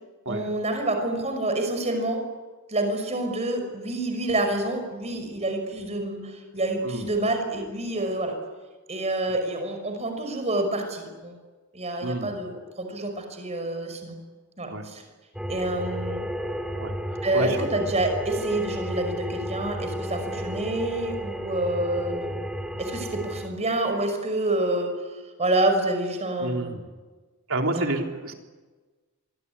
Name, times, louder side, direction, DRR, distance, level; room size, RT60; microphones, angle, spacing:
voice 1, 0.3-2.2 2.7-8.3 8.9-11.4 11.7-14.2 14.6-15.0 15.5-16.2 17.2-22.3 22.8-24.9 25.4-26.7 27.7-28.0, right 2 dB, 30° right, 6 dB, 5.7 m, -27 dB
voice 2, 12.0-12.3 14.7-14.9 16.8-16.9 17.3-17.7 26.4-26.8 27.5-28.3, right 2 dB, 65° right, 3 dB, 3.5 m, -29 dB
sound 1, 15.3-23.5, equal, 5° right, 2.4 m, -33 dB
25.5 x 21.0 x 9.8 m, 1.3 s
head